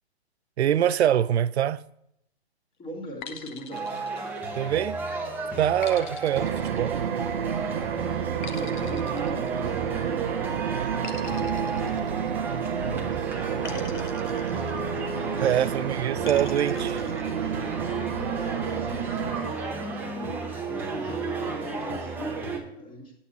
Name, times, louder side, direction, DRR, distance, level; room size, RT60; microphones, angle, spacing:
voice 1, 0.6-1.8 4.6-5.0 5.6-7.0 15.4-17.1, right 10 dB, 80° right, 0.5 m, -24 dB
voice 2, 2.8-3.9 8.1-10.3 11.0-12.4 12.7-13.7 15.0-16.3 18.1-19.4 20.5-23.1, equal, 15° left, 2.0 m, -41 dB
sound 1, 3.2-4.9 5.8-7.5 8.4-10.1 11.0-12.8 13.6-15.2 16.2-17.3, left 8 dB, 45° left, 1.0 m, -44 dB
sound 2, 3.7-22.6, right 4 dB, 5° right, 0.8 m, -33 dB
sound 3, 6.4-19.4, right 8 dB, 60° right, 0.8 m, -30 dB
8.5 x 8.4 x 4.1 m
hypercardioid pair, 150°, 32 cm